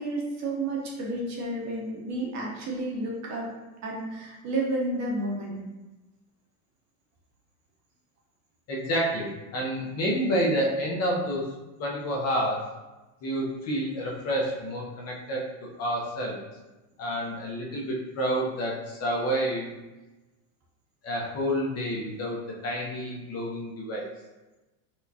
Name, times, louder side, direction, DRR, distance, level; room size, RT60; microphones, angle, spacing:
voice 1, 0.0-3.5 3.8-5.6, right 2 dB, 35° right, -2 dB, 0.9 m, -31 dB
voice 2, 8.7-11.5 11.8-12.7 13.2-16.4 17.0-19.7 21.0-24.1, equal, 35° left, -2 dB, 0.7 m, -29 dB
4.4 x 2.3 x 2.7 m, 1.1 s
supercardioid pair, 130°, 44 cm